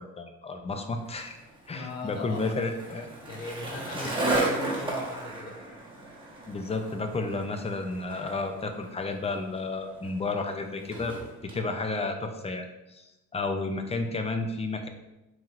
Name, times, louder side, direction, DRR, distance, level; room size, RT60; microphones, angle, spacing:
voice 1, 0.0-1.4 1.7-3.1 6.5-11.1 11.4-14.9, left 3 dB, 20° left, 5 dB, 0.5 m, -32 dB
Skateboard, 1.1-11.6, right 2 dB, 15° right, 1.3 m, -35 dB
voice 2, 1.7-2.5 3.3-5.6, left 2 dB, 60° left, 1 dB, 0.8 m, -38 dB
5.3 x 3.1 x 2.5 m, 1.0 s
cardioid pair, 90°, 30 cm